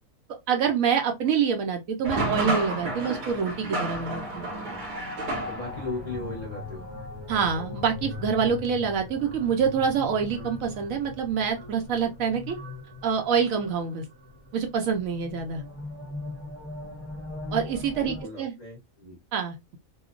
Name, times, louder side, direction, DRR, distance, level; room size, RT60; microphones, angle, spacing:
voice 1, 0.5-4.5 7.3-12.6 13.0-14.0 14.5-15.6 17.5-18.5 19.3-19.8, right 6 dB, 70° right, 0.9 m, -26 dB
sound 1, 2.0-6.0, right 2 dB, 90° right, 1.3 m, -31 dB
sound 2, 4.2-18.2, left 2 dB, 20° right, 0.7 m, -40 dB
voice 2, 5.5-6.9 18.0-19.2, left 3 dB, 35° left, 0.7 m, -37 dB
2.8 x 2.0 x 2.4 m
omnidirectional pair, 1.6 m